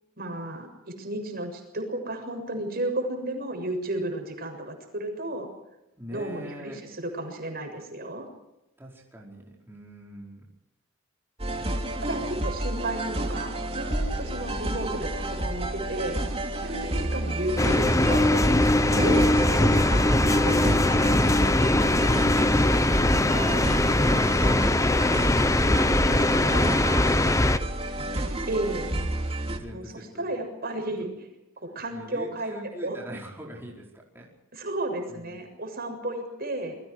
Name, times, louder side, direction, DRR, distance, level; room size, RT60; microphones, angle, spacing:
voice 1, 0.2-0.7 1.0-5.5 6.1-8.3 12.0-16.2 16.6-18.6 18.9-21.3 26.1-26.8 28.5-28.9 29.7-31.1 31.6-32.5 32.8-33.0 34.5-36.8, right 1 dB, 50° right, 5 dB, 7.2 m, -33 dB
voice 2, 6.0-6.8 8.8-10.4 11.5-12.5 14.4-14.6 18.9-19.6 19.9-20.2 21.0-22.8 23.0-25.2 25.9-28.3 29.5-30.4 31.9-34.3 35.1-35.4, right 1 dB, 10° right, -3 dB, 5.1 m, -42 dB
sound 1, 11.4-29.6, right 1 dB, 30° right, 3.1 m, -30 dB
sound 2, 17.6-27.6, left 1 dB, 15° left, 0.9 m, -21 dB
28.5 x 23.0 x 4.9 m, 0.91 s
head